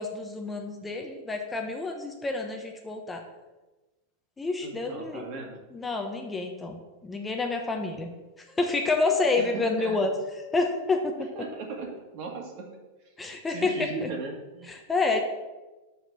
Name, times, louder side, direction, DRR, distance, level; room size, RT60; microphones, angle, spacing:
voice 1, 0.0-3.2 4.4-5.2 5.7-8.1 8.6-10.1 10.5-11.1 13.2-13.7 14.0-14.1 14.7-15.2, left 3 dB, 15° left, 3 dB, 0.9 m, -28 dB
voice 2, 4.6-5.6 9.4-10.1 11.2-12.8 13.0-13.1 13.5-14.7, right 4 dB, 50° right, 2 dB, 1.9 m, -38 dB
6.0 x 5.0 x 6.8 m, 1.1 s
hypercardioid pair, 130°, 0 cm